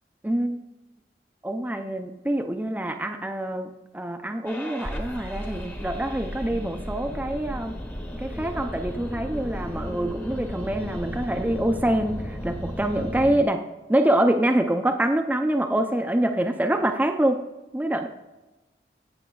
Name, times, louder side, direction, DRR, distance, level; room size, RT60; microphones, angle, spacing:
voice 1, 0.2-0.6 1.4-7.7 8.2-13.6 13.9-17.4 17.7-18.1, right 1 dB, 10° right, 5 dB, 0.4 m, -25 dB
sound 1, 4.5-13.4, equal, 10° left, 0.8 m, -34 dB
16.5 x 6.0 x 2.3 m, 1.1 s
head